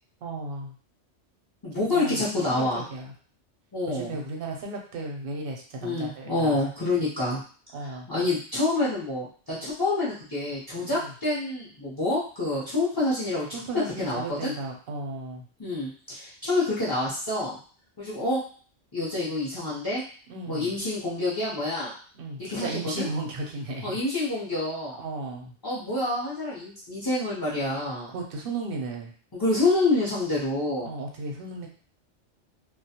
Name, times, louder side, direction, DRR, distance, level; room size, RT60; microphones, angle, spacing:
voice 1, 0.2-0.7 1.9-2.2 2.7-3.1 3.9-6.6 7.7-8.1 10.8-11.1 13.5-15.4 20.3-20.7 22.2-23.9 25.0-25.5 28.1-29.1 30.8-31.7, right 2 dB, 60° right, 1 dB, 0.6 m, -35 dB
voice 2, 1.6-2.8 3.7-4.1 5.8-7.4 7.8-13.6 14.0-14.5 15.6-17.6 18.0-18.4 18.9-20.0 20.5-21.9 22.4-23.1 23.8-25.0 25.6-28.1 29.3-30.9, left 2 dB, 30° left, -9 dB, 0.4 m, -27 dB
2.2 x 2.1 x 2.7 m, 0.42 s
omnidirectional pair, 1.2 m